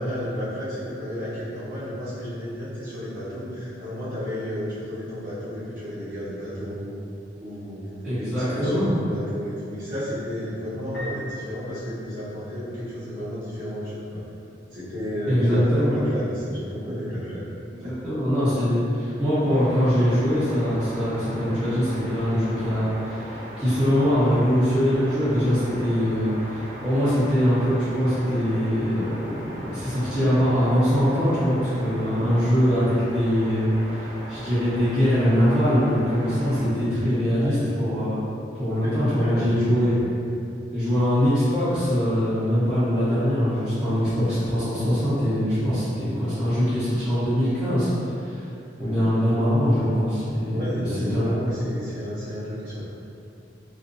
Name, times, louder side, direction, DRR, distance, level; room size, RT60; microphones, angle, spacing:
voice 1, 0.0-6.9 7.4-14.2 14.7-17.4 17.8-17.9 37.3-37.6 38.3-38.4 38.8-40.4 48.8-49.0 50.4-52.8, equal, 45° right, -13 dB, 0.8 m, -32 dB
voice 2, 8.0-8.9 15.3-16.0 17.7-29.2 29.7-38.2 38.5-40.0 40.7-48.4 48.8-51.3, equal, 5° right, -16 dB, 0.9 m, -22 dB
Piano, 10.9-12.8, equal, 75° left, 1.0 m, -40 dB
sound 1, 19.5-36.7, equal, 40° left, 0.6 m, -38 dB
2.5 x 2.1 x 2.5 m, 2.6 s
head